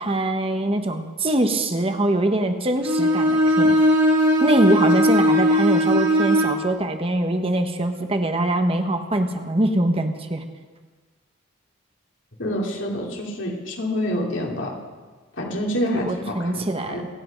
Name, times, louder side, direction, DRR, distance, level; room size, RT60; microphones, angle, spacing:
voice 1, 0.0-3.8 4.4-10.4 16.1-17.0, right 1 dB, 30° right, 6 dB, 1.1 m, -23 dB
Bowed string instrument, 2.8-6.6, equal, 60° right, 2.8 m, -18 dB
voice 2, 12.4-14.7 15.4-17.1, equal, 70° left, 0 dB, 2.7 m, -27 dB
26.5 x 9.6 x 5.2 m, 1.4 s
head